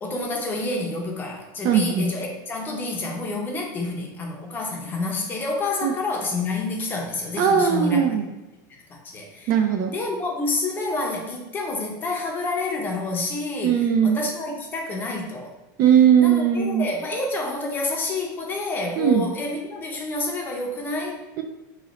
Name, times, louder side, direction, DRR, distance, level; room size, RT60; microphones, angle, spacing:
voice 1, 0.0-8.2 8.9-9.5 9.9-15.5 16.2-21.2, left 2 dB, 20° left, 1 dB, 0.6 m, -28 dB
voice 2, 1.6-2.1 5.8-5.9 7.4-8.3 9.5-9.9 13.6-14.2 15.8-16.9 19.0-19.3 21.4-21.5, right 8 dB, 40° right, 5 dB, 0.3 m, -19 dB
3.1 x 2.7 x 3.9 m, 1.0 s
supercardioid pair, 150°, 10 cm